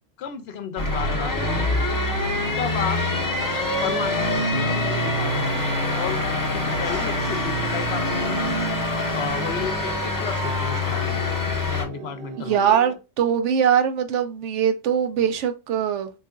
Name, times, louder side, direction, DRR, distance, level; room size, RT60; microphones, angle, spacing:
voice 1, 0.2-2.0 2.6-3.2 3.8-6.2 6.5-8.5 9.1-11.2 11.6-12.6, left 7 dB, 65° left, 0.8 m, -33 dB
sound 1, 0.8-11.9, left 1 dB, 20° left, 0.6 m, -25 dB
sound 2, 5.5-13.0, right 6 dB, 60° right, 0.7 m, -42 dB
voice 2, 12.4-16.1, right 8 dB, 90° right, 1.0 m, -22 dB
3.7 x 3.0 x 2.3 m
omnidirectional pair, 1.2 m